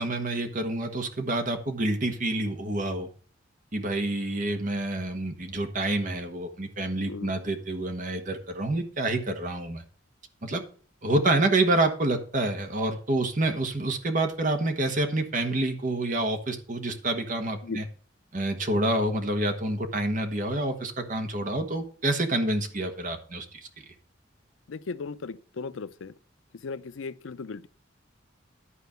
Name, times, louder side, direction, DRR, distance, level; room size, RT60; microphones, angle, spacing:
voice 1, 0.0-3.1 3.7-9.8 10.4-10.6 11.0-17.8 18.3-23.4, right 2 dB, 45° right, 1.4 m, -27 dB
voice 2, 24.7-26.1 26.5-27.7, left 4 dB, 90° left, 0.5 m, -37 dB
11.5 x 4.5 x 6.8 m
head